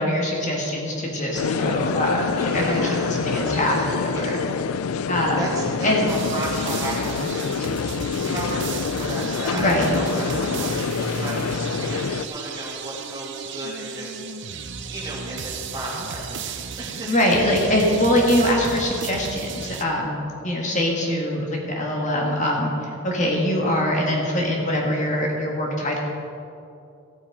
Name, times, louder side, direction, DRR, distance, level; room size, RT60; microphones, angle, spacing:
voice 1, 0.0-4.4 5.1-5.5 5.8-6.1 9.5-10.0 17.0-20.2 20.4-22.7 23.0-26.0, left 1 dB, 35° left, -1 dB, 1.6 m, -23 dB
sound 1, 1.3-12.3, left 6 dB, 80° left, 0.4 m, -26 dB
voice 2, 2.3-4.4 5.4-7.7 8.2-14.5 14.9-17.2, right 1 dB, 15° right, -6 dB, 2.7 m, -34 dB
sound 2, 6.1-19.8, right 5 dB, 55° right, 0.7 m, -34 dB
14.5 x 8.8 x 4.8 m, 2.7 s
head